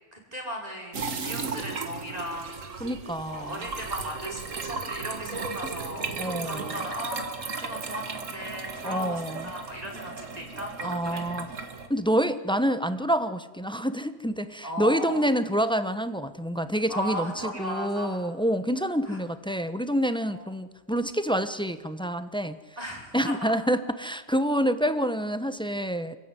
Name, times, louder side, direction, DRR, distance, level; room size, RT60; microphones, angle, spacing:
voice 1, 0.1-2.9 3.2-11.3 14.6-15.3 16.9-18.3 19.0-19.2 20.3-20.8 22.8-23.6, equal, 30° right, -1 dB, 5.8 m, -37 dB
sound 1, 0.9-11.9, right 4 dB, 90° right, 2.1 m, -35 dB
voice 2, 2.8-3.6 6.2-6.7 8.8-9.5 10.8-11.5 11.9-22.6 23.1-26.2, equal, 5° left, 11 dB, 0.9 m, -27 dB
27.5 x 15.5 x 9.9 m, 1.2 s
omnidirectional pair, 1.3 m